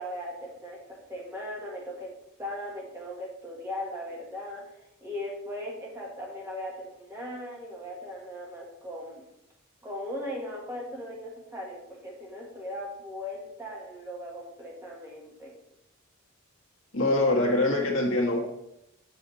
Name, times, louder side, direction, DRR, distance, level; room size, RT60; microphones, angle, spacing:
voice 1, 0.0-2.1 2.4-4.6 5.0-9.2 9.8-15.5, left 1 dB, 15° right, -3 dB, 1.4 m, -38 dB
voice 2, 16.9-18.4, left 2 dB, 65° left, -1 dB, 1.5 m, -24 dB
7.3 x 6.7 x 4.1 m, 0.82 s
head